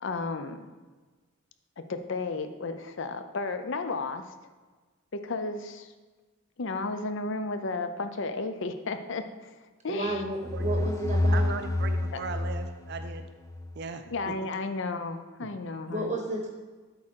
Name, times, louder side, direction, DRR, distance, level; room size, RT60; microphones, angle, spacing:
voice 1, 0.0-0.7 1.8-4.3 5.1-5.9 6.6-9.5 9.8-10.2 12.1-12.2 14.1-16.1, left 3 dB, 60° left, 9 dB, 0.6 m, -33 dB
voice 2, 9.9-11.6 15.9-16.5, right 1 dB, 35° right, 1 dB, 0.9 m, -32 dB
sound 1, 10.1-13.8, left 1 dB, 15° left, 0.3 m, -29 dB
voice 3, 10.5-10.8 11.3-13.3 13.8-14.5 15.4-15.5, right 5 dB, 50° right, 8 dB, 0.4 m, -38 dB
8.6 x 3.7 x 6.2 m, 1.3 s
head